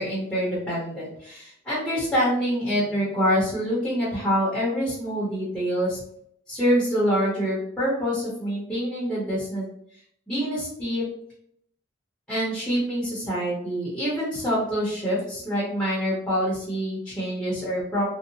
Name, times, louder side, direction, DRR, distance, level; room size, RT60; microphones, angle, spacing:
voice 1, 0.0-6.0 6.5-9.6 10.3-11.1 12.3-18.0, equal, 5° left, -9 dB, 0.7 m, -26 dB
2.7 x 2.0 x 2.7 m, 0.69 s
head